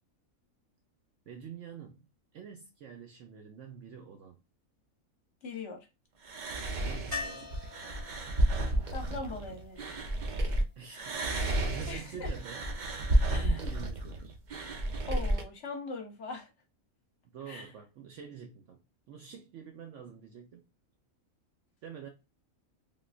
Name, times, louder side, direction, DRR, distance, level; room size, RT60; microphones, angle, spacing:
voice 1, 1.3-4.4 6.7-7.6 10.8-11.2 11.6-12.7 13.3-14.4 17.2-20.7 21.8-22.1, right 7 dB, 65° right, 0.8 m, -47 dB
voice 2, 5.4-5.9 8.9-9.9 11.9-12.3 13.3-13.6 15.1-16.5 17.5-17.7, left 3 dB, 60° left, 1.0 m, -40 dB
sound 1, 6.2-10.6 10.9-15.4, right 1 dB, 85° right, 0.4 m, -31 dB
sound 2, 7.1-11.0 13.6-13.7 14.0-14.1, left 4 dB, 15° right, 1.0 m, -44 dB
3.6 x 2.3 x 2.3 m
omnidirectional pair, 1.5 m